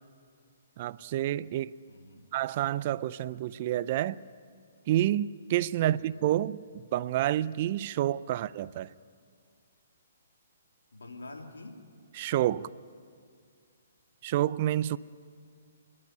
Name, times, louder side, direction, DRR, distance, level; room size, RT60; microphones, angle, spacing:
voice 1, 0.8-1.7 2.3-4.2 4.9-8.9 12.2-12.7 14.2-15.0, right 13 dB, 45° right, 0.5 m, -29 dB
voice 2, 1.9-2.3 5.8-6.3 10.9-11.8, left 2 dB, 85° left, 3.3 m, -47 dB
30.0 x 12.0 x 9.9 m
hypercardioid pair, 135°, 0 cm